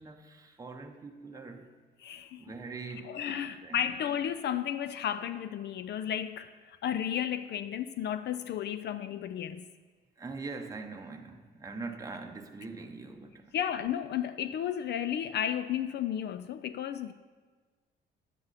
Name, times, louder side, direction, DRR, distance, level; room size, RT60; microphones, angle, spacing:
voice 1, 0.0-1.8 2.4-3.9 10.2-13.5, right 3 dB, 15° right, 0.7 m, -43 dB
voice 2, 2.0-2.5 3.0-9.6 13.5-17.1, left 9 dB, 60° left, 0.4 m, -33 dB
9.8 x 7.7 x 4.0 m
cardioid pair, 90°, 20 cm